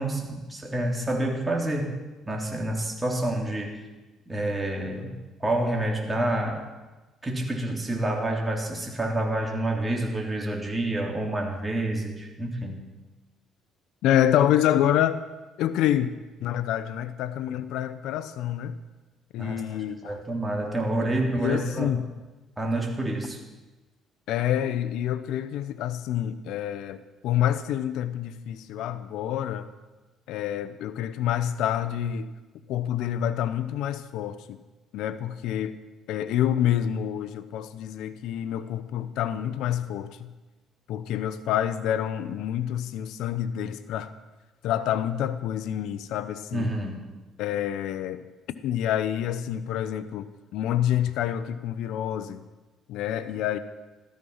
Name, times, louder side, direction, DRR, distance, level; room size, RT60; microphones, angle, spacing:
voice 1, 0.0-3.8 4.3-5.1 5.4-6.6 7.2-12.8 19.4-19.6 20.0-21.9 22.6-23.4 46.5-47.0, right 1 dB, 15° right, 0 dB, 3.4 m, -28 dB
voice 2, 14.0-15.2 15.6-16.1 16.4-18.7 19.3-20.2 21.3-22.0 24.3-29.7 30.3-32.3 32.7-34.6 34.9-35.8 36.1-40.3 40.9-44.1 44.6-46.7 47.4-48.2 48.6-50.3 50.5-52.4 52.9-53.6, left 11 dB, 80° left, 13 dB, 0.9 m, -27 dB
14.0 x 14.0 x 5.7 m, 1.2 s
cardioid pair, 90°, 0 cm